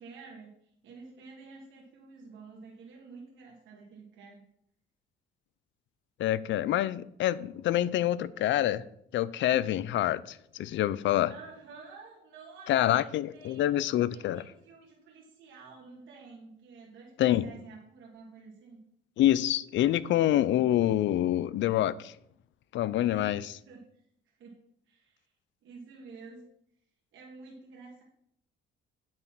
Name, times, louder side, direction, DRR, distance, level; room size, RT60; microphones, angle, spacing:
voice 1, 0.0-4.5 11.3-13.7 14.1-18.8 22.9-24.6 24.9-25.3 25.6-26.4 27.1-28.0, right 4 dB, 80° right, 1.6 m, -50 dB
voice 2, 6.2-8.8 9.1-11.3 12.7-14.4 17.2-17.5 19.2-22.1 22.7-23.5, left 13 dB, 70° left, 0.4 m, -26 dB
8.8 x 4.0 x 5.9 m
cardioid pair, 90°, 20 cm